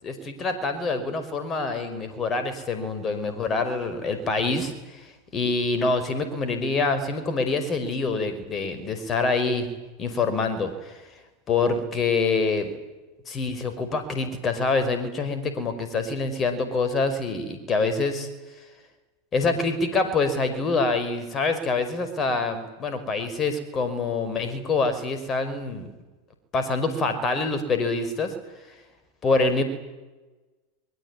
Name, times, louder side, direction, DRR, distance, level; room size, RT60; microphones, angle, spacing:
voice 1, 0.0-9.7 10.0-11.0 11.5-12.7 13.3-18.3 19.3-25.9 26.5-28.3 29.2-29.6, left 3 dB, 30° left, 9 dB, 5.3 m, -26 dB
23.0 x 22.5 x 9.9 m, 1.1 s
figure-of-eight pair, 90°, 0 cm